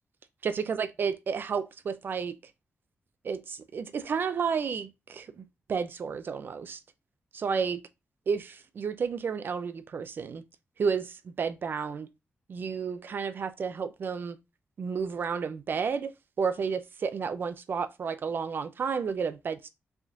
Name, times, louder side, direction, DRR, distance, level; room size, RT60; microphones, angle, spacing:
voice 1, 0.4-2.3 3.2-5.4 5.7-6.8 7.3-7.8 8.3-10.4 10.8-12.1 12.5-14.4 14.8-19.7, right 6 dB, 50° right, 0.4 m, -31 dB
4.9 x 3.5 x 2.4 m
wide cardioid pair, 145°, 4 cm